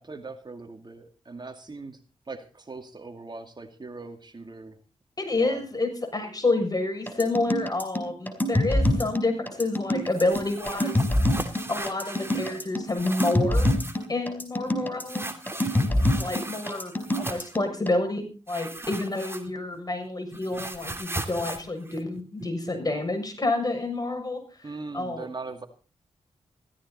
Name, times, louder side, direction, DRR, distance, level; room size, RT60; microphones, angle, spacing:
voice 1, 0.0-2.0 2.3-4.7 5.4-5.6 24.6-25.7, right 3 dB, 35° right, 6 dB, 2.3 m, -40 dB
voice 2, 5.2-11.0 11.7-13.7 14.1-15.3 16.2-24.4 24.9-25.3, left 2 dB, 30° left, 5 dB, 7.0 m, -29 dB
sound 1, 7.1-17.9, left 1 dB, 15° left, 4.7 m, -25 dB
sound 2, 10.1-12.6 12.9-14.1 15.0-17.6 18.5-19.8 20.0-22.7, right 2 dB, 20° right, 2.8 m, -37 dB
16.5 x 14.5 x 4.2 m, 0.36 s
cardioid pair, 50°, 12 cm